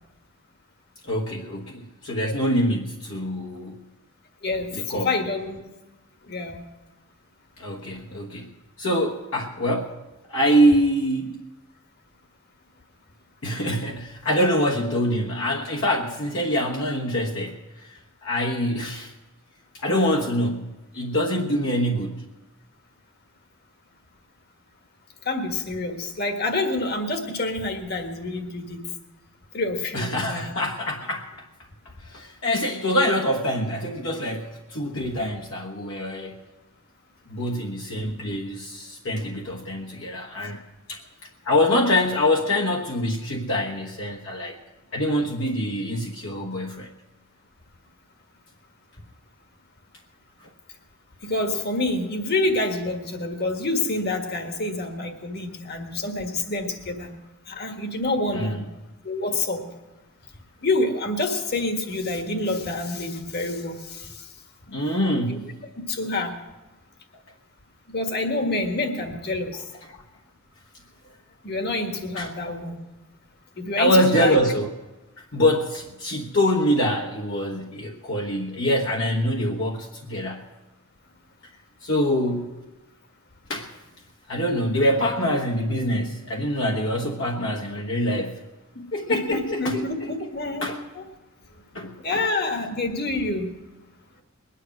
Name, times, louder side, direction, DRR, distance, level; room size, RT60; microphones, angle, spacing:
voice 1, 1.0-3.8 4.7-5.1 7.6-8.5 8.8-10.0 10.3-11.4 13.4-19.1 19.7-22.2 29.9-31.3 32.0-36.4 37.3-40.6 40.9-41.0 41.4-44.6 44.9-46.9 58.3-58.6 64.7-65.6 69.9-70.0 72.1-72.3 73.8-74.7 75.3-80.4 81.8-82.6 83.5-83.7 84.3-88.4 88.7-90.1 90.6-90.8 91.7-92.2, equal, 65° left, -2 dB, 1.3 m, -25 dB
voice 2, 4.4-5.6 6.2-6.6 25.2-28.8 29.5-30.5 51.2-57.1 57.5-58.5 59.0-59.6 60.6-64.3 65.3-65.4 65.9-66.3 67.9-69.6 71.4-72.8 73.6-74.4 84.3-84.6 89.1-91.0 92.0-93.5, left 2 dB, 50° left, 4 dB, 1.6 m, -27 dB
21.0 x 10.0 x 6.0 m, 1.1 s
head